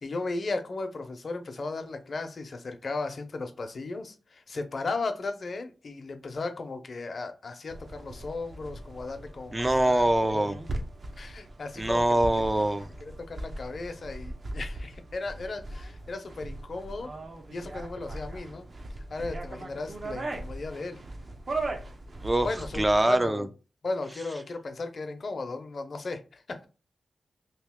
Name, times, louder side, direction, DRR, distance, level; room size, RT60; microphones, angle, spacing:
voice 1, 0.0-10.5 11.2-12.5 13.0-17.1 17.5-18.7 19.1-21.0 22.4-23.5 23.8-26.7, left 3 dB, 55° left, 0.7 m, -36 dB
sound 1, 7.7-23.3, right 2 dB, 50° right, 0.7 m, -39 dB
voice 2, 9.5-10.6 11.8-12.9 22.2-22.5 22.7-23.5, right 1 dB, 20° right, 0.4 m, -24 dB
3.0 x 2.7 x 3.5 m
cardioid pair, 70°, 0 cm